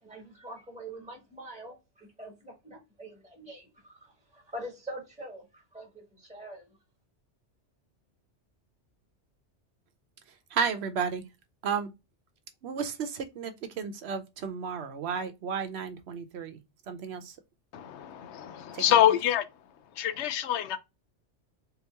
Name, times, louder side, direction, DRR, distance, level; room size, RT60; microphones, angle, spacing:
voice 1, 0.0-6.8, right 1 dB, 5° right, 1.4 m, -44 dB
voice 2, 10.3-11.3 11.6-11.9 12.6-16.6 16.9-17.4 18.7-19.0, right 6 dB, 65° right, 0.8 m, -33 dB
voice 3, 17.7-19.5 19.9-20.8, left 11 dB, 75° left, 0.8 m, -26 dB
3.7 x 2.9 x 3.3 m
omnidirectional pair, 1.2 m